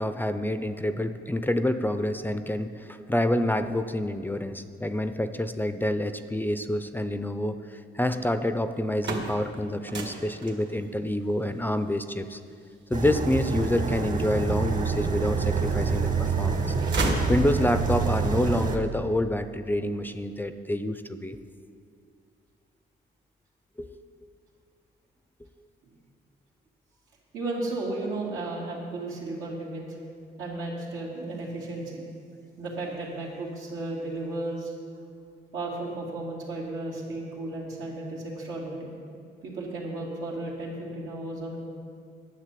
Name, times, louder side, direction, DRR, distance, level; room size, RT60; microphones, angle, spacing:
voice 1, 0.0-12.4 12.9-16.7 17.3-21.4 23.8-24.0, left 1 dB, 10° left, 10 dB, 0.5 m, -27 dB
sound 1, 8.7-14.7 15.2-16.1 16.4-18.0, right 2 dB, 65° right, 1.8 m, -33 dB
sound 2, 12.9-18.8, right 5 dB, 40° right, 1.3 m, -27 dB
voice 2, 27.3-29.9 30.4-32.0 32.6-34.7 35.5-38.8 39.4-41.6, right 2 dB, 85° right, -4 dB, 2.8 m, -34 dB
10.0 x 7.5 x 7.5 m, 2.3 s
cardioid pair, 90°, 20 cm